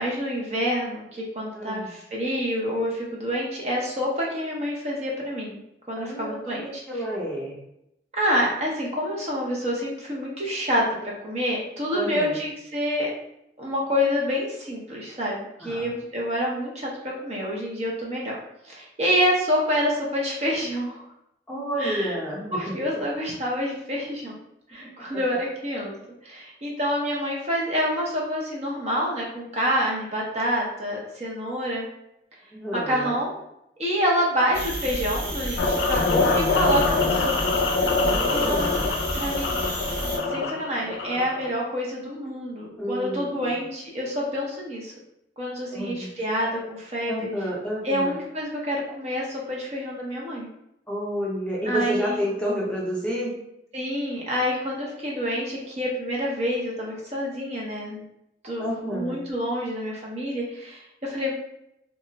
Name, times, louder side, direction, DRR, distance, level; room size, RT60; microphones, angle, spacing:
voice 1, 0.0-5.6 5.9-6.8 8.1-10.8 11.2-13.1 13.6-16.9 17.2-18.4 18.6-21.0 21.8-22.1 22.5-24.3 24.7-25.9 26.2-31.9 32.7-33.3 33.8-37.6 38.3-38.6 39.1-39.6 40.3-44.9 45.4-47.3 47.8-50.5 51.7-52.2 53.7-58.0 58.4-61.3, equal, 35° right, -3 dB, 0.6 m, -27 dB
voice 2, 1.5-1.9 6.0-7.6 11.9-12.4 15.6-15.8 21.5-22.6 22.9-23.0 24.8-24.9 32.5-33.2 38.1-38.8 42.8-43.5 45.7-46.1 47.1-48.1 50.9-53.3 58.6-59.1, equal, 5° left, -6 dB, 0.6 m, -30 dB
sound 1, 34.5-40.2, equal, 75° right, 1.2 m, -31 dB
sound 2, 35.6-41.5, left 3 dB, 90° left, 0.4 m, -24 dB
2.3 x 2.0 x 3.9 m, 0.82 s
head